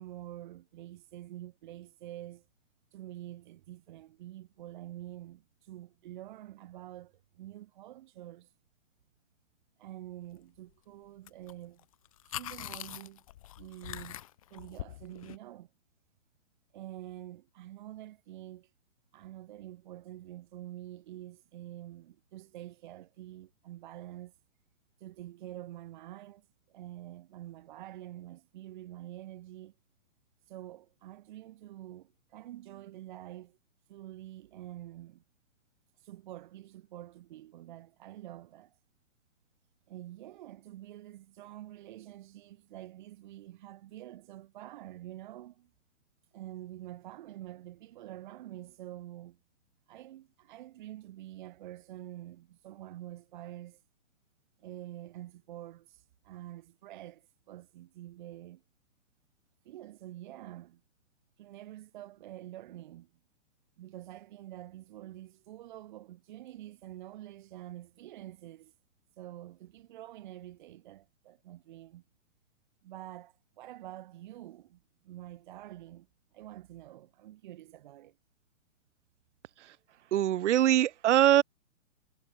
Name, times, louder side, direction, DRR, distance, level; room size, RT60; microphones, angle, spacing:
voice 1, 0.0-2.5 2.9-8.5 9.8-11.9 12.3-13.2 13.6-14.2 14.5-15.7 16.7-18.7 19.1-24.3 25.0-29.7 30.5-33.6 33.9-35.2 36.0-38.8 39.9-45.7 46.3-49.4 49.9-53.8 54.6-58.6 59.6-60.8 61.4-63.1 63.8-68.7 69.2-72.0 72.8-76.1 76.3-78.2, right 14 dB, 35° right, 2.5 m, -47 dB
sound 1, 11.3-11.5 11.8-15.4, left 13 dB, 25° left, 0.8 m, -43 dB
voice 2, 80.1-81.4, right 12 dB, 65° right, 0.5 m, -23 dB
hypercardioid pair, 160°, 39 cm